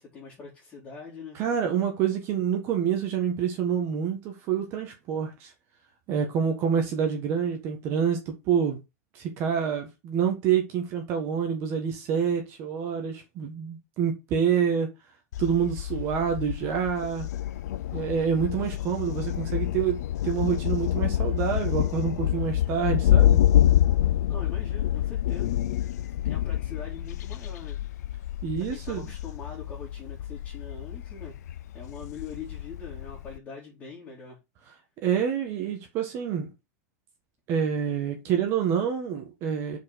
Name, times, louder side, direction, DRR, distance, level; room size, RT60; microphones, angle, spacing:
voice 1, 0.0-1.4 24.3-25.6 26.2-27.8 28.7-34.4, left 5 dB, 15° left, 2.7 m, -43 dB
voice 2, 1.3-5.5 6.1-8.8 9.1-14.9 15.4-17.3 17.9-23.4 28.4-29.1 35.0-36.5 37.5-39.8, right 7 dB, 30° right, 1.5 m, -27 dB
Thunder, 15.3-33.4, left 12 dB, 80° left, 0.5 m, -27 dB
5.4 x 4.8 x 6.3 m
supercardioid pair, 180°, 9 cm